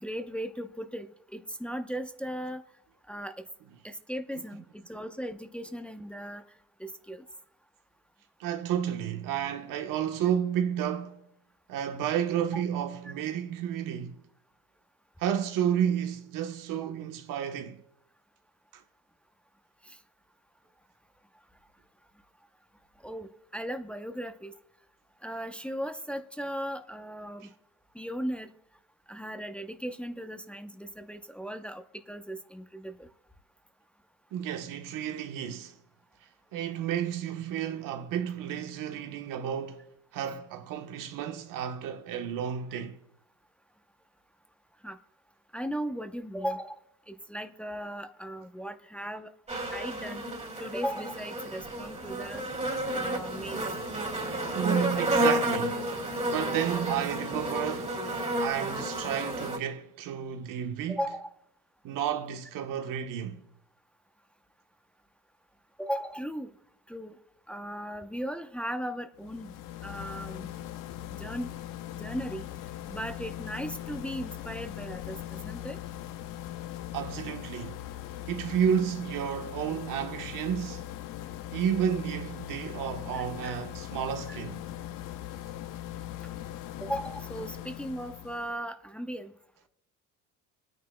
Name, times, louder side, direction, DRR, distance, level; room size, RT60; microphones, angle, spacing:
voice 1, 0.0-2.6 3.1-3.3 3.8-6.4 6.8-7.2 12.5-12.6 13.1-13.2 19.8-20.0 23.0-24.5 25.2-27.5 27.9-28.5 29.1-33.1 42.7-42.8 44.8-45.0 45.5-46.8 47.1-49.3 49.7-50.2 50.6-52.4 52.9-53.6 60.9-61.3 65.8-66.5 66.9-67.2 67.5-69.5 69.8-70.5 71.1-71.5 71.9-72.5 72.9-75.8 83.1-83.6 84.3-84.4 86.8-89.3, equal, 5° left, 0.7 m, -37 dB
voice 2, 8.4-11.2 11.7-14.2 15.2-17.8 34.3-35.7 36.5-39.8 40.1-43.0 54.5-55.9 56.3-57.9 58.4-61.0 61.8-63.4 76.9-77.8 78.3-80.8 81.5-84.7, right 9 dB, 70° right, 1.1 m, -31 dB
sound 1, 49.5-59.6, right 1 dB, 20° right, 2.4 m, -31 dB
sound 2, 69.2-88.6, left 13 dB, 65° left, 0.8 m, -40 dB
27.0 x 9.5 x 2.2 m
supercardioid pair, 85°, 34 cm